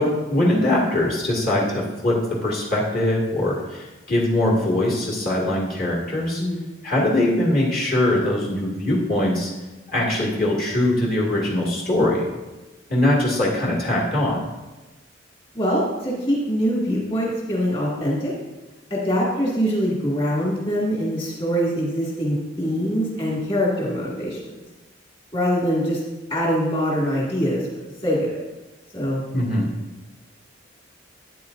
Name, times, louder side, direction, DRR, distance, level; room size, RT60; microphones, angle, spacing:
voice 1, 0.0-6.4 6.8-9.5 9.9-12.3 12.9-14.4 29.3-29.7, left 1 dB, 50° left, -4 dB, 2.1 m, -22 dB
voice 2, 15.5-18.3 18.9-24.4 25.3-26.0 26.3-27.7 28.0-28.4 28.9-29.3, equal, 30° left, -5 dB, 2.1 m, -23 dB
12.0 x 9.1 x 2.6 m, 1.1 s
head